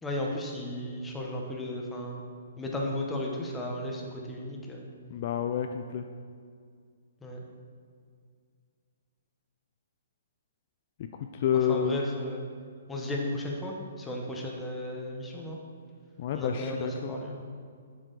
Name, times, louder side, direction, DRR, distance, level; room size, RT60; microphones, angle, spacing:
voice 1, 0.0-2.3 2.6-4.9 7.2-7.4 11.7-12.4 12.9-15.6 16.3-17.5, left 1 dB, 10° left, -1 dB, 1.0 m, -35 dB
voice 2, 5.1-6.0 11.3-12.0 16.2-17.1, left 8 dB, 50° left, 6 dB, 0.3 m, -29 dB
7.4 x 4.9 x 4.0 m, 2.1 s
hypercardioid pair, 140°, 0 cm